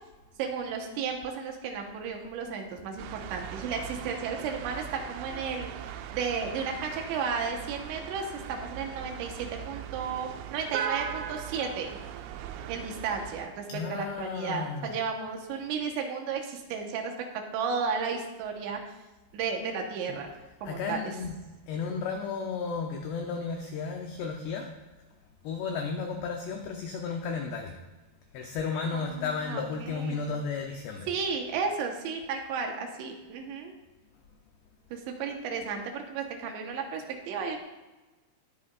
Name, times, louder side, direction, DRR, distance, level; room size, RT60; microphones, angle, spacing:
voice 1, 0.4-5.7 6.1-11.9 12.7-13.6 13.9-17.1 17.5-18.8 19.3-20.3 20.6-21.1 28.9-30.3 31.1-33.7 34.9-37.6, right 5 dB, 70° right, 2 dB, 3.2 m, -33 dB
sound 1, 3.0-13.5, right 10 dB, 85° right, 2.7 m, -39 dB
voice 2, 13.7-15.0 20.6-21.4 21.7-24.7 25.4-27.8 28.3-31.1, left 5 dB, 80° left, 2 dB, 2.5 m, -33 dB
21.0 x 8.6 x 2.5 m, 1.1 s
omnidirectional pair, 5.9 m